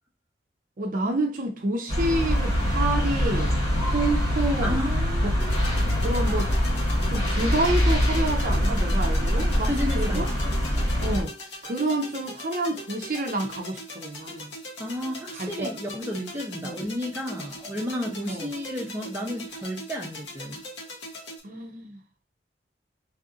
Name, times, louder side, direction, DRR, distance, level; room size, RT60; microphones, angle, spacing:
voice 1, 0.8-3.5 3.9-4.8 5.2-5.3 6.0-6.5 7.1-9.7 10.0-10.3 11.0-11.3 11.6-14.5 15.3-15.7 16.6-16.8 18.3-18.5 21.4-22.0, right 2 dB, 50° right, 0.6 m, -28 dB
empty city park, 1.9-11.2, equal, 35° left, 1.5 m, -24 dB
voice 2, 4.6-5.6 9.5-10.5 14.8-20.6, equal, 15° right, 0.7 m, -32 dB
sound 1, 5.4-21.4, left 1 dB, 75° left, 1.1 m, -40 dB
3.4 x 2.6 x 3.7 m
head